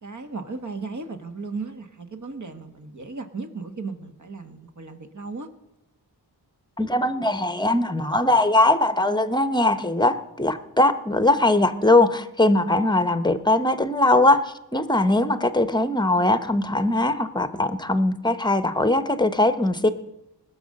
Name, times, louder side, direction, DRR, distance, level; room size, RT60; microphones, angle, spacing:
voice 1, 0.0-5.5, right 4 dB, 45° right, 7 dB, 1.4 m, -35 dB
voice 2, 6.8-19.9, left 2 dB, 10° left, 12 dB, 0.9 m, -21 dB
19.5 x 6.7 x 6.5 m, 0.91 s
cardioid pair, 65°, 41 cm